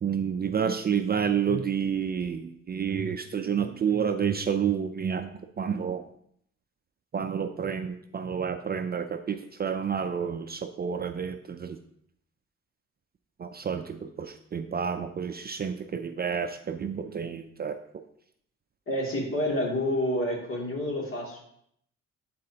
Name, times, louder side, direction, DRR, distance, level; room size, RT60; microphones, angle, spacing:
voice 1, 0.0-5.3 5.6-6.0 7.1-11.8 13.4-17.8, right 7 dB, 30° right, 7 dB, 0.5 m, -29 dB
voice 2, 18.9-21.4, left 1 dB, 45° left, -2 dB, 2.6 m, -28 dB
11.5 x 4.2 x 2.9 m, 0.70 s
cardioid pair, 90°, 30 cm